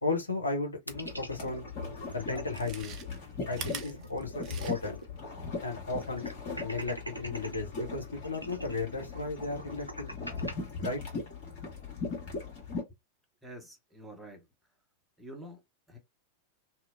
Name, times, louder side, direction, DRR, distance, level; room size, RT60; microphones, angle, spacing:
voice 1, 0.0-1.7 2.1-3.0 3.5-5.0 5.6-6.3 6.6-10.1 10.8-11.0, left 3 dB, 80° left, 0.7 m, -34 dB
sound 1, 0.9-12.8, left 4 dB, 45° left, 1.5 m, -39 dB
sound 2, 0.9-2.6 3.0-3.1 3.3-5.1 5.4-5.5 6.0-7.6 8.2-10.5, right 1 dB, 90° right, 0.4 m, -43 dB
Chewing mastication, 1.6-1.7 2.4-5.1 5.4-5.5, right 7 dB, 35° right, 0.5 m, -44 dB
voice 2, 13.4-14.4 15.2-15.6 15.9-16.0, right 1 dB, 5° right, 0.8 m, -47 dB
2.8 x 2.0 x 2.4 m
figure-of-eight pair, 90°, 0 cm